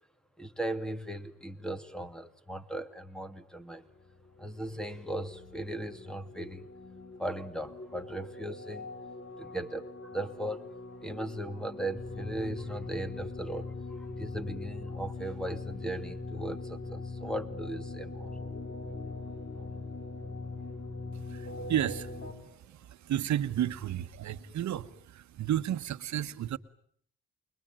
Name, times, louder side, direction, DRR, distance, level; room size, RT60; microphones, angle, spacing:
voice 1, 0.4-3.8 4.4-6.7 7.2-8.9 9.4-18.3 19.6-19.7, right 1 dB, ahead, 2.4 m, -38 dB
sound 1, 4.0-22.3, left 3 dB, 40° left, 4.3 m, -41 dB
voice 2, 21.1-26.6, right 11 dB, 65° right, 1.4 m, -33 dB
28.5 x 22.5 x 9.1 m
cardioid pair, 90°, 30 cm